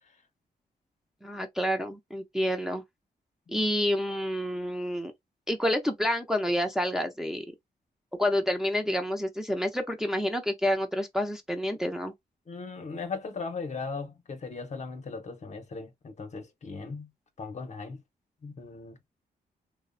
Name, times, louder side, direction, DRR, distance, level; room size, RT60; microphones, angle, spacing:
voice 1, 1.2-2.8 3.5-5.1 5.5-7.5 8.2-12.1, equal, 5° right, 0.5 m, -28 dB
voice 2, 12.5-17.1 17.4-18.0 18.4-19.0, left 4 dB, 45° left, 0.7 m, -38 dB
2.7 x 2.0 x 2.4 m
cardioid pair, 80°, 17 cm